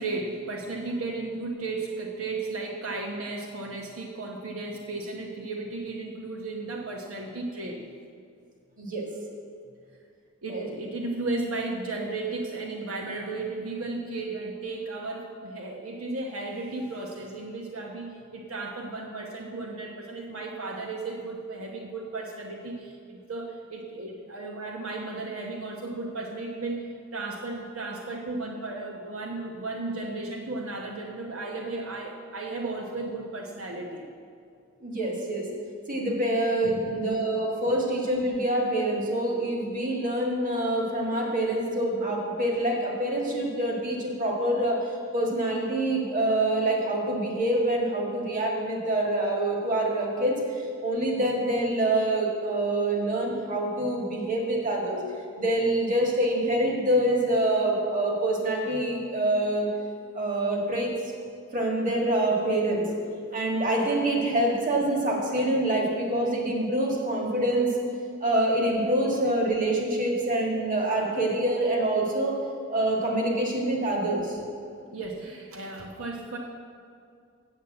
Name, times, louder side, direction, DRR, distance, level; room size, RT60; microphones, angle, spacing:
voice 1, 0.0-7.8 10.4-26.9 27.1-34.1 36.6-36.9 74.9-76.4, right 3 dB, 80° right, 0 dB, 1.0 m, -34 dB
voice 2, 34.8-35.5 35.9-44.8 45.1-50.4 50.8-55.0 55.4-59.7 60.1-60.9 61.5-62.9 63.3-67.7 68.2-72.4 72.7-74.4, right 1 dB, 40° right, 0 dB, 1.7 m, -26 dB
7.9 x 7.1 x 7.7 m, 2.3 s
head